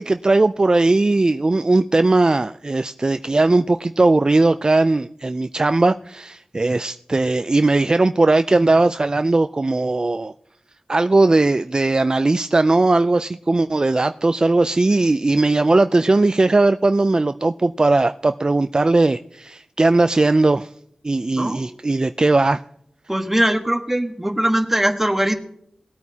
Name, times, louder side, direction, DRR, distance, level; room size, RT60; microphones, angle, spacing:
voice 1, 0.0-10.3 10.9-20.7 21.0-22.6, right 2 dB, 35° right, 10 dB, 0.4 m, -18 dB
voice 2, 21.4-21.8 23.1-25.4, right 1 dB, 10° right, 5 dB, 1.4 m, -21 dB
19.0 x 9.0 x 2.8 m, 0.68 s
wide cardioid pair, 55°, 2 cm